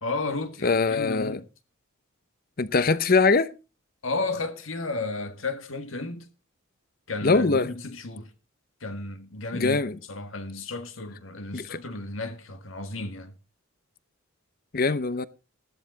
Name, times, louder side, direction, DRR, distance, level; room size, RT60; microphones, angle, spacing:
voice 1, 0.0-1.4 4.0-6.3 7.1-8.3 8.8-9.8 10.1-13.3, left 3 dB, 70° left, 1.8 m, -33 dB
voice 2, 0.6-1.4 2.6-3.5 7.2-7.7 9.5-10.0 11.5-11.8 14.7-15.3, left 4 dB, 45° left, 0.8 m, -22 dB
13.5 x 12.0 x 4.0 m
head